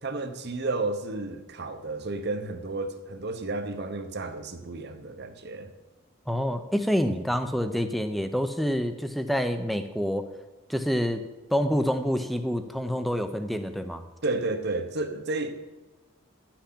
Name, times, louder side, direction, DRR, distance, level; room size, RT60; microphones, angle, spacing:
voice 1, 0.0-5.7 14.2-15.5, right 2 dB, 50° right, 8 dB, 1.0 m, -32 dB
voice 2, 6.3-10.3 10.7-11.2 11.5-14.0, equal, ahead, 8 dB, 0.6 m, -27 dB
11.0 x 6.0 x 8.5 m, 1.1 s
head